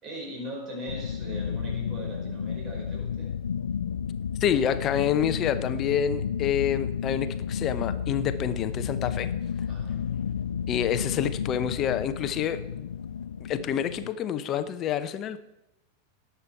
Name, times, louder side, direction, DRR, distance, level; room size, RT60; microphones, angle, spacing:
voice 1, 0.0-3.3 9.7-10.0, right 1 dB, 30° right, -1 dB, 4.9 m, -39 dB
sound 1, 0.9-14.1, left 7 dB, 70° left, 0.4 m, -32 dB
voice 2, 4.4-9.3 10.7-12.9 13.4-15.4, left 9 dB, 30° left, 11 dB, 0.8 m, -28 dB
18.5 x 7.0 x 4.6 m, 0.92 s
figure-of-eight pair, 90°, 0 cm